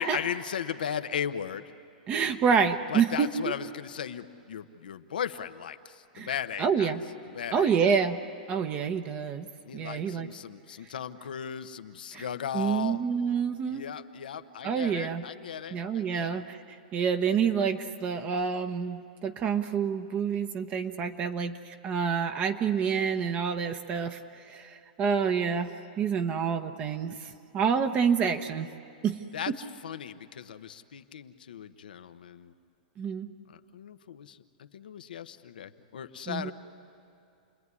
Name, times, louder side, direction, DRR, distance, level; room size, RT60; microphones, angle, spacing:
voice 1, 0.0-1.7 2.9-6.9 7.3-7.7 9.6-13.0 13.7-16.4 29.3-32.5 33.5-36.5, left 8 dB, 90° left, 10 dB, 1.0 m, -37 dB
voice 2, 2.1-3.3 6.2-6.3 6.6-7.0 7.5-8.2 8.5-9.5 9.7-10.3 12.1-12.2 12.5-13.8 14.6-15.2 15.7-24.2 24.5-25.7 26.0-28.7 29.0-29.2 33.0-33.3 36.3-36.5, right 6 dB, 30° right, 8 dB, 1.0 m, -28 dB
29.0 x 20.5 x 9.7 m, 2.6 s
hypercardioid pair, 140°, 5 cm